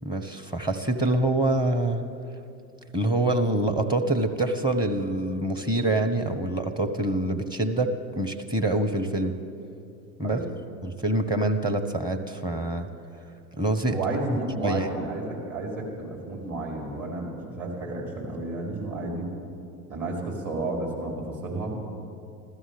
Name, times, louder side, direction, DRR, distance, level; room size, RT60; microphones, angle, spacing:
voice 1, 0.0-2.0 2.9-9.4 10.2-10.4 10.8-12.9 13.6-14.0 14.6-14.9, right 1 dB, 10° right, 9 dB, 1.1 m, -25 dB
voice 2, 13.9-19.3 19.9-21.8, right 2 dB, 35° right, -1 dB, 4.8 m, -32 dB
15.5 x 13.0 x 7.0 m, 2.6 s
hypercardioid pair, 80°, 47 cm